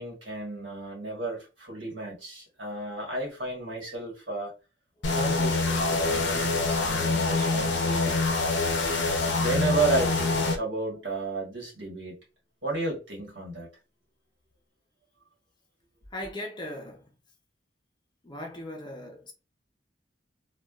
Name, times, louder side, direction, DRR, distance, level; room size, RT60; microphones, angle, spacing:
voice 1, 0.0-4.5 5.1-8.3 9.2-12.1 12.6-13.7, right 2 dB, 75° right, 1.5 m, -32 dB
sound 1, 5.0-10.6, left 3 dB, 70° left, 0.6 m, -25 dB
voice 2, 8.4-9.4 16.1-17.0 18.2-19.3, left 1 dB, 25° left, 0.6 m, -40 dB
3.2 x 2.2 x 2.4 m
head